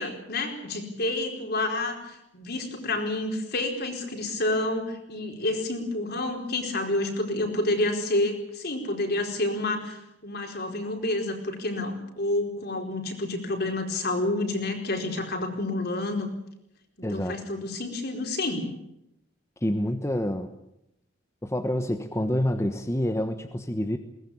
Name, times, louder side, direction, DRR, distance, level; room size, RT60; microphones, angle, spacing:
voice 1, 0.0-10.0 10.2-16.3 17.1-18.7, left 2 dB, 55° left, 3 dB, 4.6 m, -29 dB
voice 2, 17.0-17.4 19.6-20.5 21.4-24.0, left 1 dB, 15° left, 6 dB, 1.2 m, -27 dB
21.5 x 19.0 x 8.6 m, 0.81 s
head